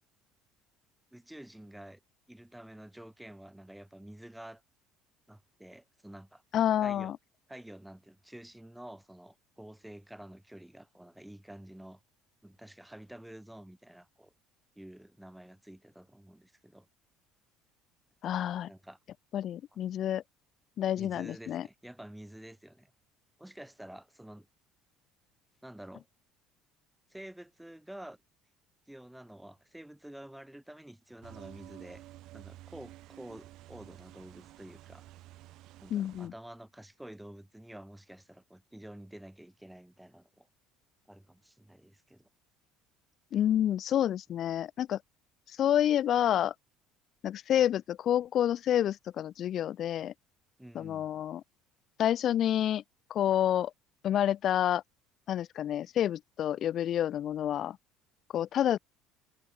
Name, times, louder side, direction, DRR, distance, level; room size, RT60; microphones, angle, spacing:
voice 1, 1.1-2.0 2.3-4.6 5.3-6.4 6.8-7.1 7.5-12.0 12.4-14.3 14.8-16.9 18.7-19.0 21.0-22.9 23.4-24.5 25.6-26.1 27.1-28.2 28.9-32.0 32.3-35.0 35.8-40.5 41.1-42.3 50.6-51.1, right 1 dB, 5° right, 2.1 m, -49 dB
voice 2, 6.5-7.2 18.2-18.7 19.3-20.2 20.8-21.7 35.9-36.3 43.3-45.0 45.6-46.5 47.2-50.1 50.7-51.4 52.0-52.8 53.1-53.7 54.0-54.8 55.3-57.8 58.3-58.8, left 11 dB, 50° left, 0.4 m, -28 dB
sound 1, 31.2-36.3, right 16 dB, 65° right, 2.9 m, -51 dB
cardioid pair, 115°, 0 cm